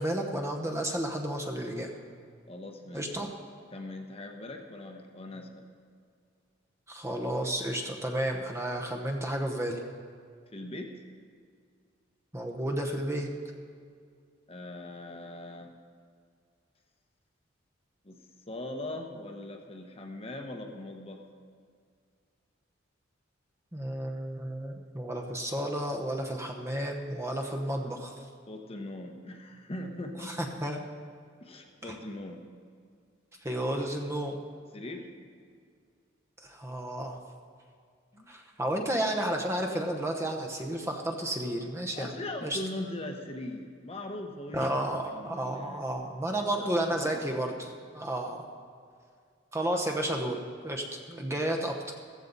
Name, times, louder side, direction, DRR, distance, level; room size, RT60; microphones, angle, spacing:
voice 1, 0.0-1.9 2.9-3.3 6.9-9.8 12.3-13.3 23.7-28.2 30.2-30.8 31.8-32.0 33.4-34.4 36.4-37.2 38.3-42.1 42.4-42.6 44.5-48.4 49.5-51.9, right 1 dB, 15° right, 2 dB, 1.0 m, -32 dB
voice 2, 2.5-3.2 3.7-5.6 10.5-10.9 14.5-15.7 18.0-21.2 28.5-30.4 31.4-32.4 34.7-35.1 38.1-38.3 41.9-44.8 45.0-45.9 46.4-47.5, left 1 dB, 30° left, 3 dB, 1.0 m, -40 dB
15.0 x 14.5 x 4.1 m, 2.1 s
head